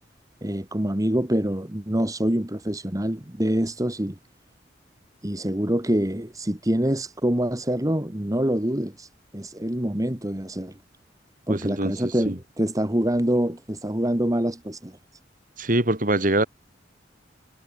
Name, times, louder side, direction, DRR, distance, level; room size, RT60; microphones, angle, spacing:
voice 1, 0.4-4.2 5.2-9.1 9.3-10.7 11.5-15.0, right 1 dB, 20° right, 1.9 m, -25 dB
voice 2, 11.5-12.4 15.6-16.5, right 1 dB, 50° right, 3.4 m, -24 dB
head